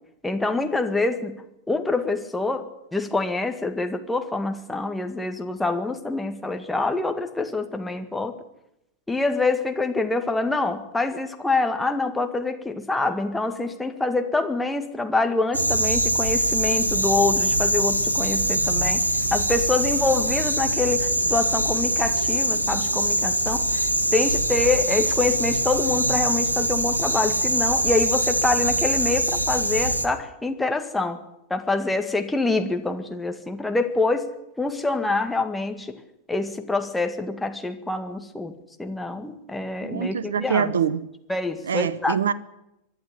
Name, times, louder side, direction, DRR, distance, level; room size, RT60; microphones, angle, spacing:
voice 1, 0.2-8.4 9.1-31.2 31.5-34.3 34.6-36.0 36.3-40.7 41.3-42.2, left 3 dB, 5° left, 1.9 m, -26 dB
sound 1, 15.5-30.1, right 1 dB, 85° right, 1.4 m, -23 dB
voice 2, 39.8-41.0 41.6-42.3, right 7 dB, 65° right, 1.0 m, -24 dB
24.0 x 11.5 x 9.6 m
figure-of-eight pair, 90°, 0 cm